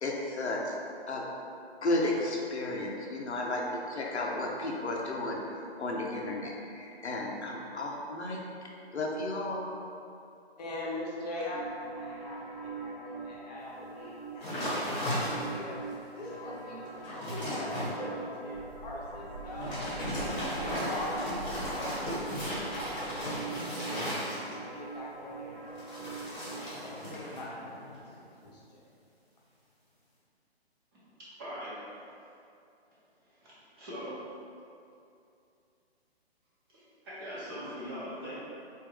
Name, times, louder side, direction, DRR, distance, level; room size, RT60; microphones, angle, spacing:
voice 1, 0.0-0.7 1.1-1.2 1.8-5.4 5.8-8.4 8.9-9.6, left 2 dB, 85° left, -1 dB, 0.7 m, -33 dB
voice 2, 10.6-11.6 11.9-14.7 15.4-19.7 20.6-22.3 23.9-25.9 26.8-28.8, left 1 dB, 40° left, -5 dB, 0.8 m, -42 dB
sound 1, 11.5-27.4, right 3 dB, 60° right, 1.0 m, -44 dB
sound 2, 14.4-15.7 16.2-16.3 16.8-17.9 19.5-24.7 25.7-27.4 27.7-28.1, equal, 20° left, 1.2 m, -35 dB
sound 3, 18.5-23.6, right 2 dB, 85° right, 1.1 m, -46 dB
voice 3, 31.2-32.0 33.3-34.2 36.7-38.4, equal, 20° right, -9 dB, 0.8 m, -41 dB
3.5 x 2.5 x 3.3 m, 2.6 s
figure-of-eight pair, 140°, 32 cm